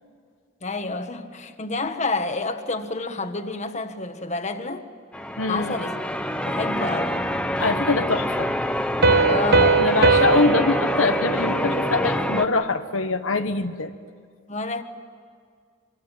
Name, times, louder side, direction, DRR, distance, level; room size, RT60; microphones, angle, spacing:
voice 1, 0.6-4.9 5.5-6.0 6.5-7.3 9.3-9.9 14.5-14.8, left 3 dB, 35° left, 1.5 m, -29 dB
Church bell, 5.1-12.4, equal, 5° left, 1.0 m, -26 dB
voice 2, 5.4-5.8 7.6-8.5 9.8-13.9, left 3 dB, 85° left, 1.3 m, -23 dB
Piano, 9.0-12.4, right 4 dB, 55° right, 1.2 m, -21 dB
24.5 x 24.5 x 9.2 m
head